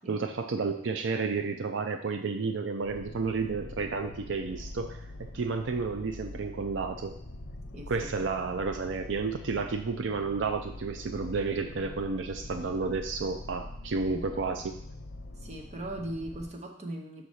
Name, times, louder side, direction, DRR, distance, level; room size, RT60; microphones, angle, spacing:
voice 1, 0.1-7.2 7.9-14.8, right 4 dB, 80° right, 7 dB, 0.5 m, -31 dB
sound 1, 2.8-16.5, left 1 dB, 75° left, 0.8 m, -44 dB
voice 2, 7.7-8.5 14.0-14.5 15.4-17.2, right 1 dB, 40° right, 2 dB, 1.0 m, -40 dB
5.9 x 4.2 x 6.2 m, 0.70 s
head